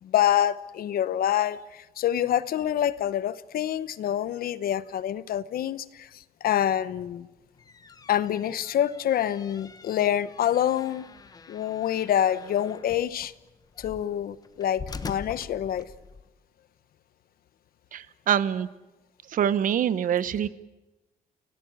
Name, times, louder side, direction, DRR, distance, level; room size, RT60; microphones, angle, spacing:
voice 1, 0.0-6.1 6.4-7.3 8.1-11.0 11.5-13.3 13.8-15.9, left 11 dB, 65° left, 0.9 m, -26 dB
sound 1, 7.4-16.3, left 5 dB, 25° left, 1.0 m, -45 dB
voice 2, 17.9-18.7 19.3-20.5, right 9 dB, 55° right, 1.0 m, -25 dB
29.5 x 17.5 x 8.8 m
wide cardioid pair, 175°, 16 cm